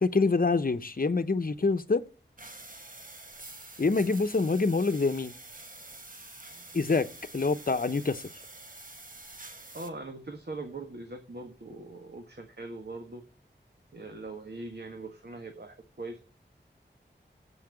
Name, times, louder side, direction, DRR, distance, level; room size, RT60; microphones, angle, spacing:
voice 1, 0.0-2.0 3.8-5.3 6.7-7.1 7.3-8.2, left 3 dB, 50° left, 0.9 m, -26 dB
sound 1, 2.4-9.9, right 2 dB, 45° right, 1.7 m, -47 dB
voice 2, 9.7-13.2 13.9-16.2, right 2 dB, 60° right, 1.5 m, -41 dB
7.8 x 5.8 x 7.7 m
wide cardioid pair, 40°, 19 cm